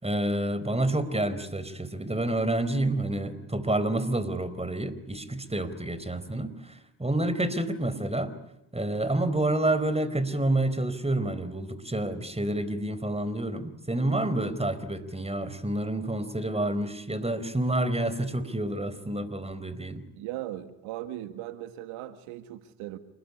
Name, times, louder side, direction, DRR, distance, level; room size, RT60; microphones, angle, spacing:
voice 1, 0.0-8.3 8.7-20.0, right 1 dB, 15° right, 14 dB, 4.5 m, -28 dB
voice 2, 20.2-23.0, right 13 dB, 85° right, 10 dB, 1.8 m, -38 dB
28.5 x 21.0 x 9.9 m, 0.85 s
supercardioid pair, 65°, 48 cm